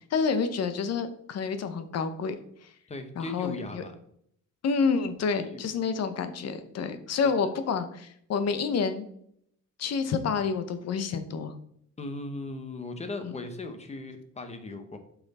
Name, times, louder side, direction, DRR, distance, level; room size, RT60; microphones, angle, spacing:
voice 1, 0.1-2.3 3.2-3.8 4.6-9.1 9.8-11.5 13.2-13.3, left 5 dB, 55° left, 10 dB, 0.9 m, -28 dB
voice 2, 2.9-3.9 5.4-5.7 7.4-7.5 12.0-15.0, left 2 dB, 20° left, 7 dB, 0.9 m, -38 dB
7.5 x 5.8 x 4.2 m, 0.68 s
cardioid pair, 180°, 31 cm